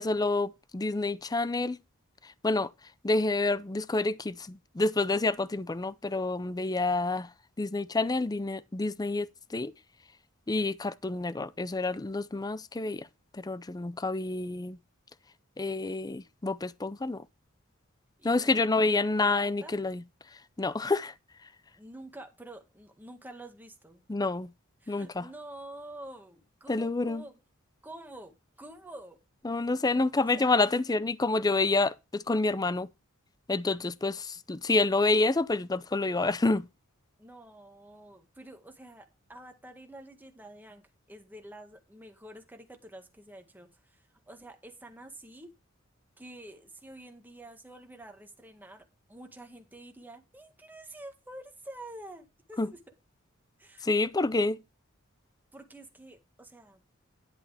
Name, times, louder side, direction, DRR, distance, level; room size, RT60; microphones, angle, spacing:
voice 1, 0.0-1.8 2.2-2.7 3.0-7.3 7.6-9.7 10.5-13.1 13.3-14.8 15.6-17.2 18.2-20.0 20.6-21.1 24.1-24.5 24.9-25.3 26.7-27.2 29.4-32.9 33.5-36.7 52.6-52.7 53.8-54.6, left 3 dB, 20° left, 0.5 m, -28 dB
voice 2, 18.2-19.7 21.8-24.1 24.8-27.3 27.8-29.2 29.7-30.6 37.2-45.5 46.2-52.8 53.6-54.1 55.5-56.8, right 1 dB, 10° right, 1.8 m, -48 dB
11.0 x 8.1 x 3.4 m
head